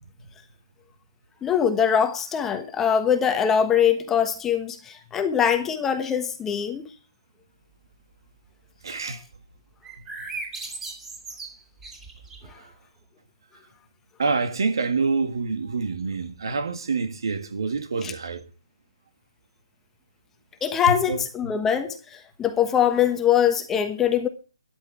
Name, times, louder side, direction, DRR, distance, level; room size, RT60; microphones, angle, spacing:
voice 1, 1.4-6.9 18.0-18.1 20.6-24.3, left 8 dB, 10° left, 1.2 m, -23 dB
voice 2, 8.8-9.2 12.4-12.7 14.2-18.4 20.9-21.2, right 4 dB, 60° right, 1.8 m, -27 dB
sound 1, 9.8-12.5, right 3 dB, 10° right, 2.9 m, -37 dB
13.5 x 10.5 x 4.6 m
figure-of-eight pair, 145°, 3 cm